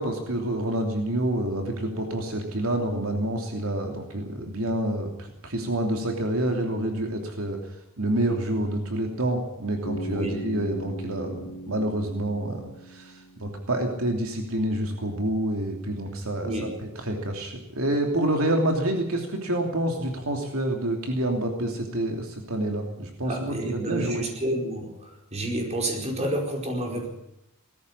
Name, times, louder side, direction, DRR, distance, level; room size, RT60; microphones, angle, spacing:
voice 1, 0.0-7.6 8.0-11.4 11.7-12.6 12.9-16.5 17.0-24.3, right 1 dB, 75° right, 3 dB, 3.0 m, -27 dB
Bass guitar, 9.8-13.8, equal, 70° left, 3.3 m, -38 dB
voice 2, 16.4-16.8 23.2-27.1, right 1 dB, 30° right, 2 dB, 4.9 m, -30 dB
19.0 x 14.0 x 9.8 m, 0.83 s
head